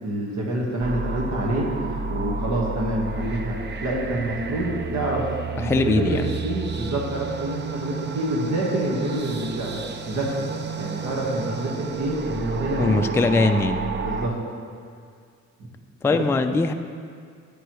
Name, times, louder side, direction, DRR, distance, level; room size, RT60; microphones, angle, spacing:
voice 1, 0.0-5.3 5.6-10.5 10.8-13.0 14.0-14.4, right 1 dB, 70° right, -2 dB, 1.6 m, -27 dB
sound 1, 0.8-14.3, right 4 dB, 35° right, 0.6 m, -31 dB
voice 2, 5.6-6.3 12.8-13.8 16.0-16.7, left 3 dB, 10° left, 6 dB, 0.3 m, -21 dB
9.7 x 9.0 x 3.1 m, 2.1 s
cardioid pair, 90°, 30 cm